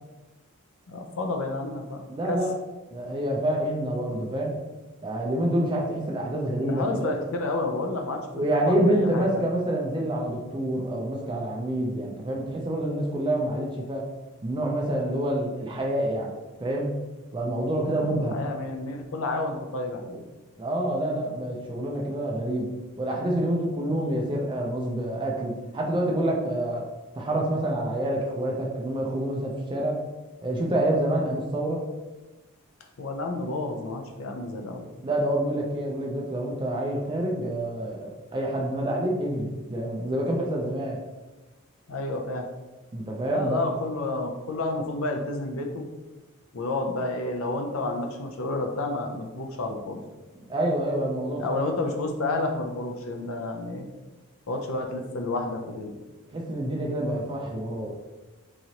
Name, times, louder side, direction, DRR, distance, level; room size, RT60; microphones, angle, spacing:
voice 1, 0.9-2.4 6.6-9.4 17.9-20.2 33.0-34.9 41.9-42.5 43.3-45.9 46.5-50.0 51.4-53.8 54.5-55.9, left 2 dB, 65° left, 4 dB, 0.5 m, -30 dB
voice 2, 2.1-2.5 2.9-4.5 5.0-7.1 8.3-14.0 14.4-16.3 16.6-16.9 17.3-18.4 20.6-22.7 23.0-26.8 27.2-30.0 30.4-31.8 35.0-41.0 42.9-43.6 50.5-51.4 56.3-57.9, right 1 dB, 20° right, -1 dB, 0.4 m, -27 dB
3.7 x 3.0 x 2.8 m, 1.1 s
head